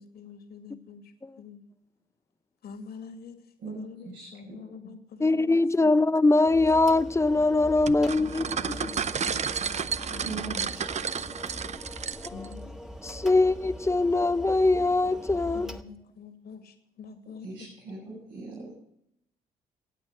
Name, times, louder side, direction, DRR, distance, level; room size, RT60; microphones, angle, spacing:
voice 1, 0.0-1.6 2.6-5.9 8.0-9.8 10.1-10.7 12.3-12.7 15.5-17.7, left 6 dB, 60° left, 2.3 m, -46 dB
voice 2, 5.2-8.5 12.2-12.3 13.0-15.7, left 2 dB, 15° left, 0.8 m, -22 dB
sound 1, 6.4-15.8, equal, 5° right, 1.4 m, -42 dB
sound 2, 7.9-12.5, right 7 dB, 40° right, 0.7 m, -32 dB
voice 3, 10.2-10.8 17.4-18.7, right 4 dB, 80° right, 5.8 m, -40 dB
15.0 x 8.7 x 7.7 m
hypercardioid pair, 55°, 18 cm